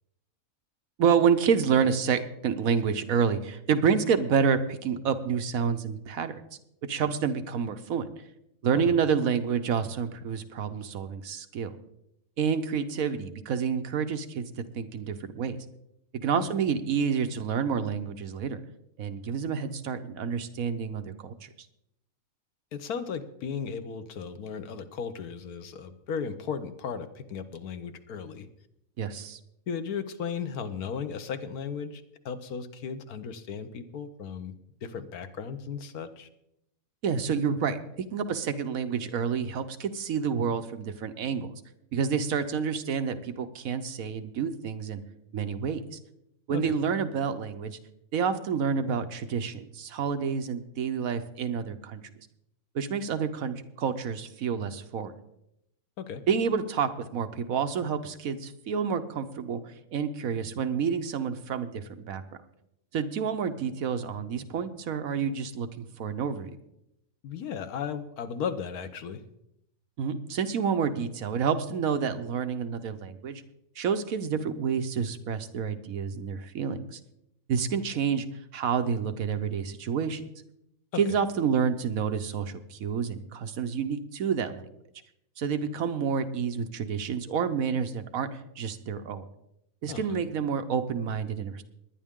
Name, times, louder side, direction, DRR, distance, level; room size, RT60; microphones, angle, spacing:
voice 1, 1.0-6.4 6.9-8.1 8.6-11.7 12.4-15.6 16.2-18.6 19.0-21.3 29.0-29.4 37.0-37.8 38.1-41.5 41.9-45.0 45.3-45.8 46.5-47.8 48.1-52.0 52.7-55.1 56.3-59.6 59.9-62.2 62.9-66.6 70.0-73.4 73.8-77.0 77.5-78.3 78.5-80.2 81.0-84.7 85.4-89.3 89.8-91.6, right 6 dB, 70° right, 9 dB, 1.3 m, -28 dB
voice 2, 22.7-28.5 29.7-34.5 34.8-36.3 46.5-46.8 56.0-56.2 67.2-69.2 80.9-81.2 89.9-90.2, left 6 dB, 90° left, 10 dB, 1.4 m, -36 dB
20.5 x 10.0 x 3.7 m, 0.80 s
omnidirectional pair, 1.5 m